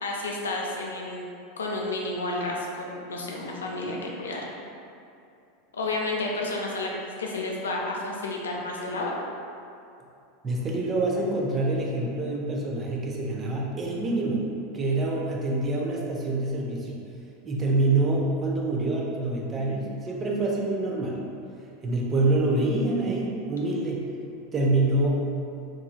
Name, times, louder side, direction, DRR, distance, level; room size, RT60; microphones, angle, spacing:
voice 1, 0.0-1.3 1.6-4.5 5.7-6.9 7.2-9.2, left 2 dB, 80° left, -1 dB, 0.4 m, -31 dB
voice 2, 10.4-14.5 14.7-16.9 17.4-21.2 21.8-24.0 24.5-25.2, right 2 dB, 30° right, -3 dB, 0.5 m, -26 dB
3.0 x 2.5 x 2.2 m, 2.5 s
hypercardioid pair, 85°, 0 cm